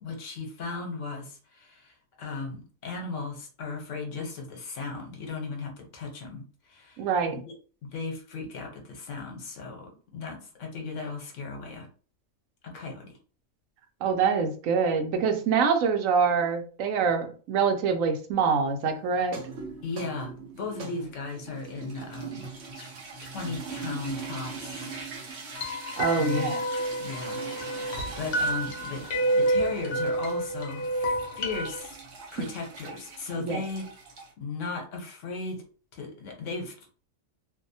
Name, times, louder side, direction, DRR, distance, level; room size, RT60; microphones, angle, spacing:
voice 1, 0.0-7.5 7.8-11.9 12.6-13.1 19.8-22.5 22.8-22.9 23.2-24.9 26.1-29.0 29.3-32.0 32.3-33.8 34.4-35.6 35.9-36.7, left 4 dB, 70° left, 2 dB, 1.1 m, -37 dB
voice 2, 7.0-7.4 14.0-19.4 26.0-26.6 32.4-32.5 33.4-33.6, right 5 dB, 90° right, 6 dB, 1.0 m, -25 dB
sound 1, 19.2-34.3, right 4 dB, 60° right, 0.9 m, -42 dB
sound 2, 25.6-31.8, right 1 dB, 55° left, 0.7 m, -29 dB
2.7 x 2.1 x 2.6 m, 0.39 s
omnidirectional pair, 1.3 m